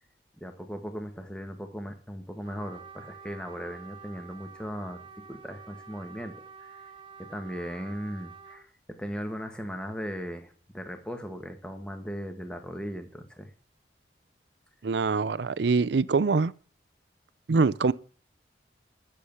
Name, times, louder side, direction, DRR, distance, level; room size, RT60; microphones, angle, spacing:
voice 1, 0.4-5.0 5.3-6.8 7.2-13.5, equal, 5° left, 1.5 m, -38 dB
Trumpet, 2.4-8.6, right 5 dB, 30° right, 0.8 m, -48 dB
voice 2, 14.8-16.5 17.5-17.9, right 4 dB, 80° right, 0.5 m, -24 dB
11.5 x 7.2 x 8.0 m
head